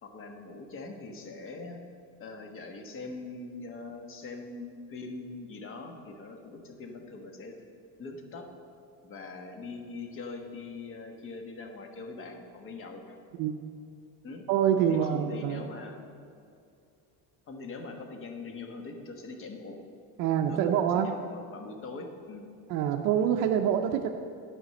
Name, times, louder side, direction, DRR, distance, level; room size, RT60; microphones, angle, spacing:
voice 1, 0.0-1.8 2.2-7.6 8.0-8.5 9.0-13.2 14.2-14.4 14.9-16.0 17.5-19.8 20.5-22.5, left 3 dB, 30° left, 4 dB, 1.3 m, -42 dB
voice 2, 14.5-15.7 20.2-21.1 22.7-24.1, right 9 dB, 60° right, 2 dB, 0.7 m, -26 dB
12.5 x 5.0 x 7.7 m, 2.4 s
cardioid pair, 155°, 39 cm